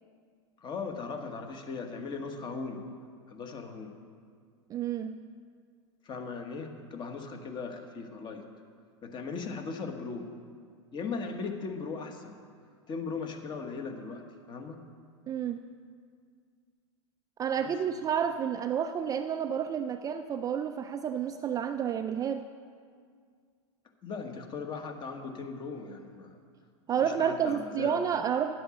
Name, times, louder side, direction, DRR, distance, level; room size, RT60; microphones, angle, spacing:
voice 1, 0.6-2.8 3.3-3.9 6.0-8.4 9.0-10.3 10.9-12.4 12.9-14.8 17.6-17.7 24.0-26.4 26.9-27.9, left 4 dB, 30° left, 5 dB, 1.3 m, -38 dB
voice 2, 4.7-5.2 15.3-15.6 17.4-22.5 26.9-28.5, right 8 dB, 25° right, 8 dB, 0.4 m, -30 dB
10.5 x 7.8 x 7.0 m, 2.1 s
supercardioid pair, 125°, 16 cm